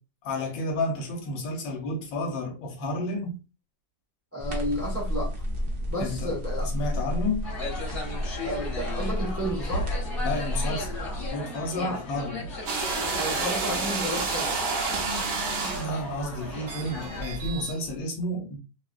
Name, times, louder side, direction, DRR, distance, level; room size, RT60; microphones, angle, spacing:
voice 1, 0.2-3.4 6.0-6.3 6.6-7.5 10.2-12.5 15.8-18.6, left 1 dB, 70° left, 1.5 m, -31 dB
voice 2, 4.3-5.3 5.9-6.7 8.4-9.9 11.7-12.1 13.1-14.6, equal, 15° right, 0.5 m, -32 dB
sound 1, 4.4-11.3, equal, 85° right, 0.5 m, -31 dB
sound 2, 7.4-17.2, left 1 dB, 40° left, 1.3 m, -36 dB
sound 3, 12.7-17.8, right 4 dB, 65° right, 1.3 m, -30 dB
3.6 x 2.3 x 2.3 m
omnidirectional pair, 2.2 m